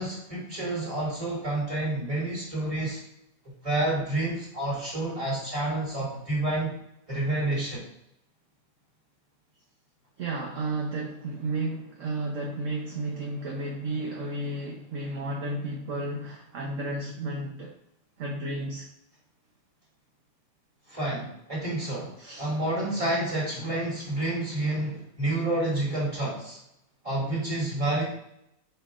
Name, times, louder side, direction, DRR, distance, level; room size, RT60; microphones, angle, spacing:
voice 1, 0.0-3.0 3.6-6.8 7.1-7.8 20.9-26.6 27.0-28.0, right 2 dB, 20° right, -5 dB, 2.3 m, -29 dB
voice 2, 10.2-17.7 18.2-18.9 22.2-22.5, right 2 dB, 55° right, -1 dB, 1.1 m, -33 dB
7.9 x 5.0 x 2.5 m, 0.78 s
omnidirectional pair, 1.8 m